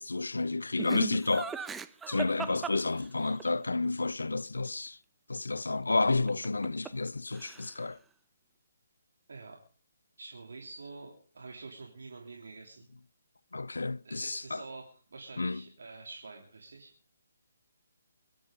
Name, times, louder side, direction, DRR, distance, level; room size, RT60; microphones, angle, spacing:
voice 1, 0.0-1.6 2.1-5.0 5.3-8.0 13.5-14.6 15.4-15.6, left 3 dB, 80° left, 0.7 m, -31 dB
Laughter, 0.8-3.5 6.3-7.1 7.3-7.9, right 5 dB, 10° right, 0.7 m, -39 dB
voice 2, 9.3-9.6 10.2-12.9 14.0-16.9, right 3 dB, 70° right, 3.3 m, -47 dB
23.5 x 11.5 x 5.3 m
figure-of-eight pair, 145°, 0 cm